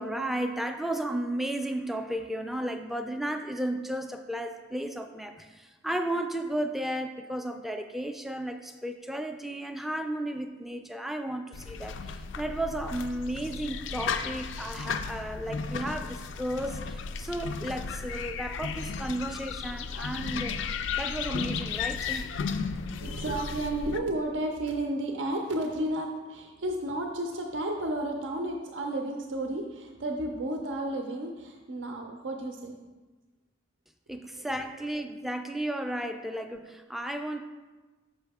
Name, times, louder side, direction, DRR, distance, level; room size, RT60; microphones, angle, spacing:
voice 1, 0.0-20.6 20.9-22.3 23.1-23.2 34.1-37.4, right 1 dB, ahead, 6 dB, 0.3 m, -34 dB
sound 1, 11.5-24.0, left 5 dB, 80° left, 0.3 m, -34 dB
voice 2, 23.0-32.8 34.4-34.5 36.3-36.4, right 1 dB, 85° right, 3 dB, 0.5 m, -32 dB
5.5 x 5.5 x 3.5 m, 1.2 s
head